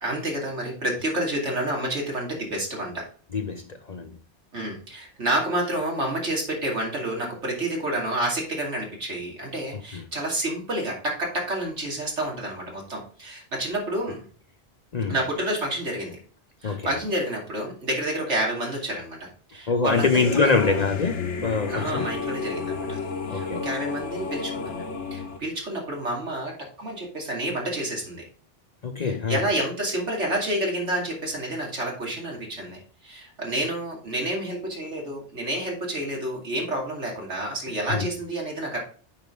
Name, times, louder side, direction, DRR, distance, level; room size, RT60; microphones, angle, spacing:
voice 1, 0.0-3.0 4.5-14.2 15.1-16.2 16.6-20.8 21.7-23.0 23.3-28.2 29.0-38.8, right 1 dB, 85° right, 2.9 m, -29 dB
voice 2, 3.3-4.2 9.7-10.0 14.9-15.2 16.6-16.9 19.7-22.1 23.3-23.7 28.8-29.4 37.9-38.1, left 4 dB, 45° left, 0.6 m, -25 dB
sound 1, 19.9-25.4, left 4 dB, 85° left, 1.3 m, -31 dB
8.6 x 5.2 x 3.8 m
omnidirectional pair, 1.2 m